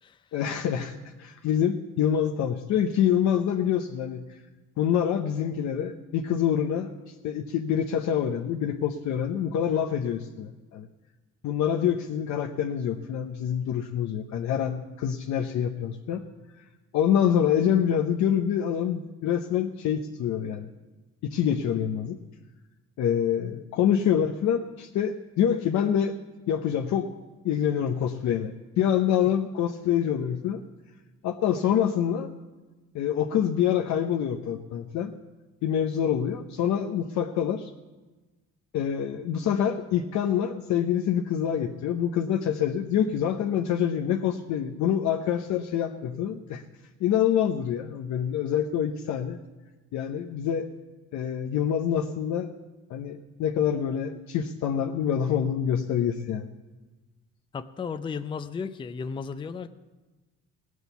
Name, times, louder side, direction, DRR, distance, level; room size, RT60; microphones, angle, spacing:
voice 1, 0.3-4.3 4.8-6.9 7.2-10.9 11.4-16.2 16.9-20.7 21.2-22.2 23.0-26.2 26.5-27.1 27.4-30.6 31.2-32.3 32.9-35.1 35.6-37.7 38.7-46.6 47.0-49.4 49.9-50.7 51.1-52.5 52.9-56.5, left 9 dB, 70° left, 3 dB, 0.7 m, -26 dB
voice 2, 57.5-59.7, left 5 dB, 15° left, 11 dB, 0.4 m, -34 dB
17.5 x 6.4 x 6.9 m, 1.2 s
cardioid pair, 125°, 30 cm